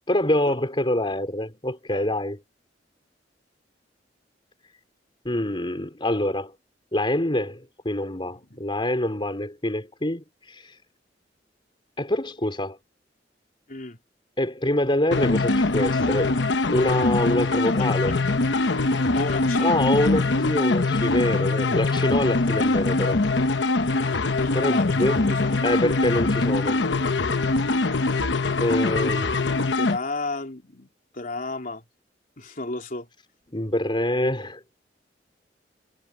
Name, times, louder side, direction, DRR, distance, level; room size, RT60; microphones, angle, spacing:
voice 1, 0.1-2.4 5.2-6.5 6.9-10.8 12.0-12.8 14.4-16.4 16.7-18.2 19.6-23.2 24.5-25.2 25.6-26.8 28.6-29.4 33.5-34.6, left 1 dB, 30° left, 3.9 m, -25 dB
sound 1, 15.1-30.0, left 3 dB, 80° left, 1.0 m, -23 dB
voice 2, 19.1-19.7 24.4-25.0 25.3-25.5 29.7-31.8 32.4-33.1, left 2 dB, 50° left, 3.3 m, -33 dB
head